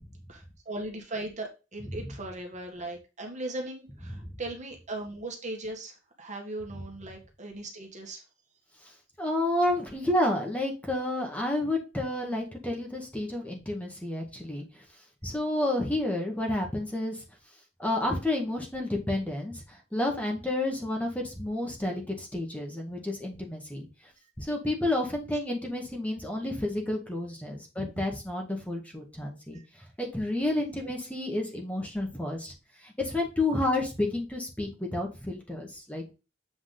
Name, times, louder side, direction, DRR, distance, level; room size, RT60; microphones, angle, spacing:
voice 1, 0.3-8.2 27.8-28.0 29.5-29.6, right 2 dB, 40° right, 1 dB, 1.8 m, -38 dB
voice 2, 9.2-14.6 15.2-17.2 17.8-23.9 24.4-29.6 30.0-32.5 32.8-36.0, left 1 dB, 5° left, 1 dB, 1.8 m, -30 dB
7.9 x 4.7 x 3.9 m, 0.29 s
head